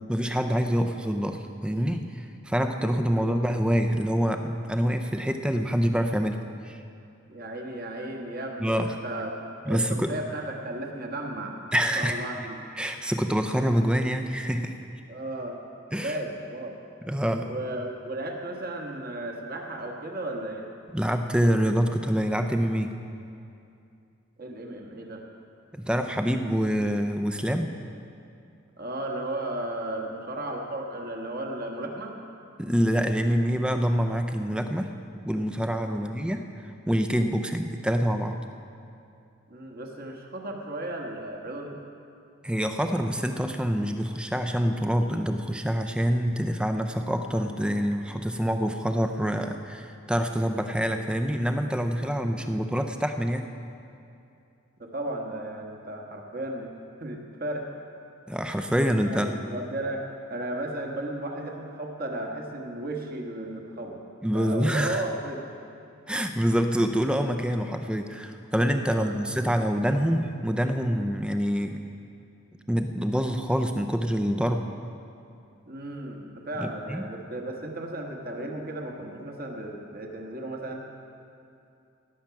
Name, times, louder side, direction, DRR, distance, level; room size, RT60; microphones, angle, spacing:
voice 1, 0.0-6.8 8.6-9.0 9.7-10.1 11.7-12.3 12.8-14.7 15.9-16.2 17.1-17.5 20.9-22.9 25.7-27.7 32.6-34.9 35.2-36.4 36.9-38.4 42.4-53.5 58.3-59.3 64.2-65.0 66.1-71.8 72.7-74.6 76.6-77.0, equal, 5° right, 6 dB, 0.5 m, -26 dB
voice 2, 3.0-3.3 7.3-11.6 11.9-12.6 15.1-15.6 15.9-16.8 17.4-20.7 24.4-25.2 28.8-32.2 35.9-36.0 39.5-41.8 52.4-52.6 54.8-56.7 57.0-57.7 59.0-60.0 60.3-64.0 64.3-65.4 68.8-69.1 75.7-80.8, right 1 dB, 45° right, 1 dB, 1.3 m, -35 dB
18.0 x 7.3 x 5.8 m, 2.6 s
head